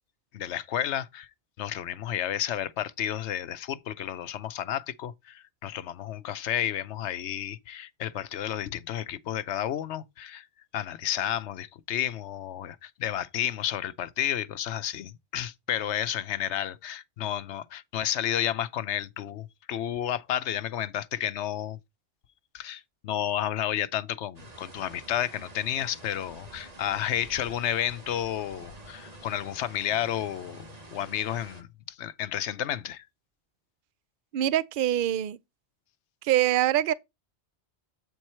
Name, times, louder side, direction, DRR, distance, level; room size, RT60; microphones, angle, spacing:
voice 1, 0.3-1.3 1.6-10.5 10.7-21.8 22.5-30.7 30.9-33.1, left 11 dB, 85° left, 1.0 m, -31 dB
sound 1, 24.4-31.6, right 1 dB, 35° right, 1.6 m, -48 dB
voice 2, 34.3-35.4 36.2-36.9, right 12 dB, 55° right, 0.7 m, -24 dB
8.3 x 4.7 x 4.3 m
omnidirectional pair, 1.1 m